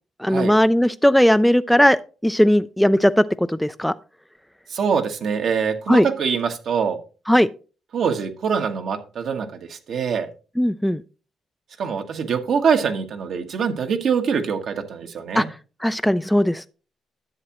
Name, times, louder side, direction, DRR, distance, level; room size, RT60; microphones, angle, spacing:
voice 1, 0.2-3.2 3.5-3.9 5.9-6.1 7.3-7.5 10.6-11.0 15.4-15.5 15.8-16.7, equal, 5° left, 12 dB, 0.3 m, -17 dB
voice 2, 4.7-7.0 7.9-10.3 11.8-15.5, right 6 dB, 65° right, 6 dB, 1.3 m, -24 dB
11.0 x 7.4 x 3.0 m, 0.35 s
cardioid pair, 90°, 0 cm